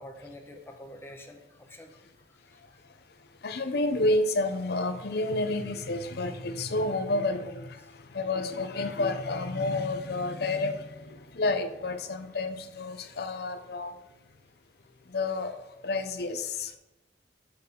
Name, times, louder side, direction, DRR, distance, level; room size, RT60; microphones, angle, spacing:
voice 1, 0.0-2.0 2.5-2.6 7.8-7.9, left 1 dB, 15° left, 3 dB, 0.8 m, -47 dB
voice 2, 2.6-2.9 3.2-14.0 15.1-15.5 15.8-16.8, left 2 dB, 60° left, 9 dB, 0.6 m, -30 dB
6.7 x 4.6 x 5.2 m, 0.95 s
head